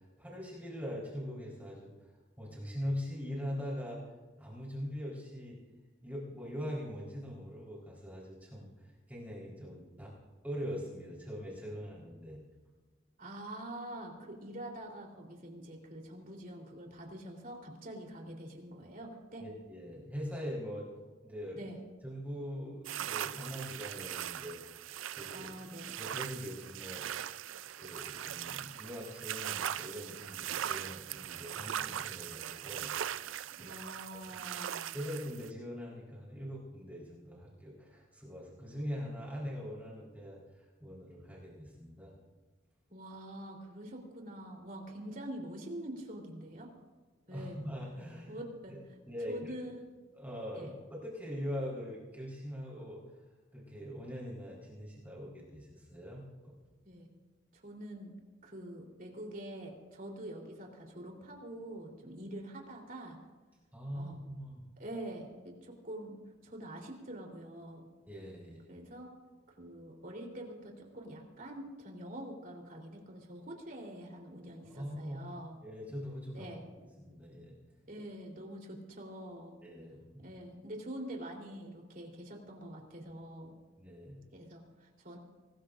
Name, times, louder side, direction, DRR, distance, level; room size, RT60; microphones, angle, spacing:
voice 1, 0.0-2.1 2.4-4.1 4.4-5.6 6.0-10.1 10.4-12.4 19.4-20.9 21.2-21.6 22.0-25.5 26.0-27.1 27.8-33.0 33.3-33.7 34.1-34.2 34.9-42.2 47.3-48.4 48.7-48.8 49.1-49.6 50.1-53.0 53.5-56.5 63.7-64.6 68.1-68.7 74.6-75.3 75.6-76.5 76.8-77.6 79.6-80.2 83.8-84.2, equal, 10° right, -5 dB, 4.2 m, -42 dB
voice 2, 13.2-19.4 21.5-21.8 25.3-25.9 33.6-34.9 42.9-46.7 47.3-47.7 48.3-49.0 49.3-49.8 50.6-50.7 56.8-57.1 57.5-58.1 58.4-63.2 63.9-64.1 64.8-67.8 68.7-69.1 69.5-75.5 76.3-76.6 77.9-79.6 80.2-83.5 84.3-85.2, right 1 dB, 45° right, 0 dB, 3.7 m, -45 dB
sound 1, 22.8-35.5, right 10 dB, 85° right, 0.4 m, -40 dB
24.5 x 20.0 x 2.6 m, 1.3 s
head